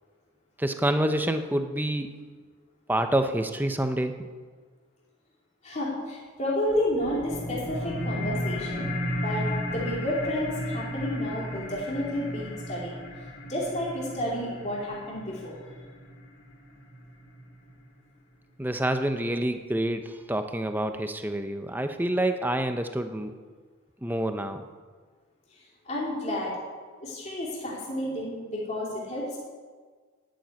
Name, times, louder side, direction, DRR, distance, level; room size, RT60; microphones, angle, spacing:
voice 1, 0.6-2.2 2.9-4.1 18.6-23.3 24.0-24.6, right 1 dB, 10° right, 7 dB, 0.7 m, -27 dB
voice 2, 5.6-12.9 13.4-15.6 25.5-25.6 25.8-26.5 27.0-29.4, left 1 dB, 30° left, -5 dB, 2.9 m, -31 dB
sound 1, 6.7-17.7, equal, 55° left, 3.3 m, -34 dB
11.0 x 7.7 x 9.3 m, 1.5 s
head